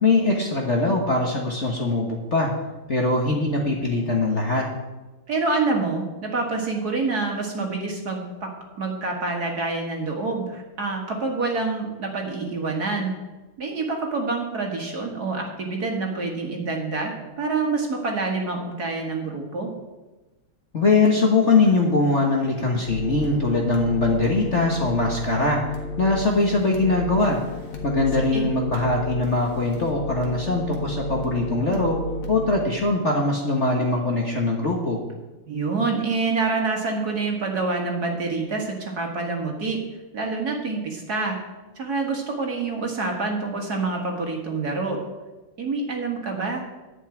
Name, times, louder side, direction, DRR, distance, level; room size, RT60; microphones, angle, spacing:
voice 1, 0.0-2.5 2.9-4.6 20.7-25.6 26.0-27.4 27.8-32.0 32.3-35.0, left 3 dB, 40° left, -1 dB, 1.3 m, -22 dB
voice 2, 5.3-8.5 8.8-13.1 13.6-19.7 28.3-28.4 35.5-39.8 40.1-41.4 41.8-45.0 45.6-46.6, right 3 dB, 45° right, 1 dB, 2.1 m, -27 dB
sound 1, 22.9-32.6, left 1 dB, 75° left, 2.6 m, -32 dB
11.0 x 5.5 x 8.8 m, 1.1 s
omnidirectional pair, 2.4 m